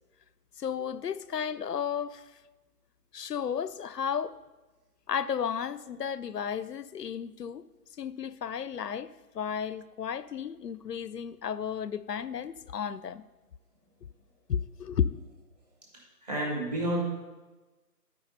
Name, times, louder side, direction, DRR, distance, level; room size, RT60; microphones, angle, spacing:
voice 1, 0.6-2.2 3.1-4.4 5.1-7.6 8.0-9.1 9.3-13.2 14.5-15.2, left 7 dB, 85° left, 0.6 m, -33 dB
voice 2, 15.9-17.0, right 1 dB, 25° right, 2.0 m, -31 dB
11.5 x 5.0 x 5.3 m
figure-of-eight pair, 170°, 47 cm